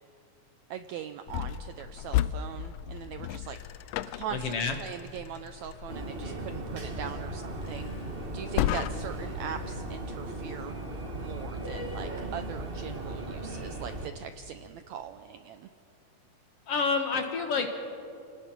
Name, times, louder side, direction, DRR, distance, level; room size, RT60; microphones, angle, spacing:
voice 1, 0.7-3.6 4.0-7.9 8.3-10.7 11.1-15.7, right 9 dB, 80° right, 9 dB, 1.6 m, -41 dB
sound 1, 1.3-9.3, left 12 dB, 85° left, 2.3 m, -35 dB
voice 2, 4.3-4.7 16.7-17.7, left 4 dB, 55° left, 5 dB, 2.0 m, -28 dB
sound 2, 5.9-14.1, right 1 dB, 50° right, 0.6 m, -37 dB
29.5 x 19.0 x 6.1 m, 2.7 s
omnidirectional pair, 3.9 m